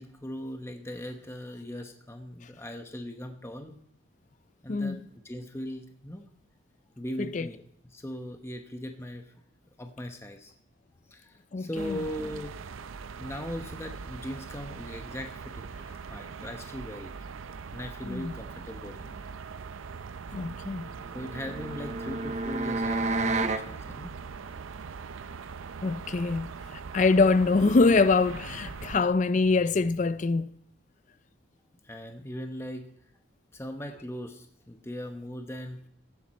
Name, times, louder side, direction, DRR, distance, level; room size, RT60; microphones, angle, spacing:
voice 1, 0.0-3.8 4.6-5.0 5.2-6.2 7.0-7.6 7.8-9.2 9.8-10.5 11.1-12.5 13.2-15.7 16.1-17.1 17.7-19.2 20.4-20.5 21.1-24.1 31.8-32.9 33.5-35.8, equal, 15° left, 0.8 m, -39 dB
voice 2, 4.7-5.0 7.3-7.5 11.5-12.0 18.0-18.3 20.3-20.9 25.8-26.5 26.9-30.5, left 3 dB, 40° left, 0.4 m, -24 dB
sound 1, 11.7-29.0, right 5 dB, 85° right, 0.5 m, -41 dB
sound 2, 21.1-23.7, right 3 dB, 35° right, 0.7 m, -30 dB
15.0 x 11.0 x 4.2 m
head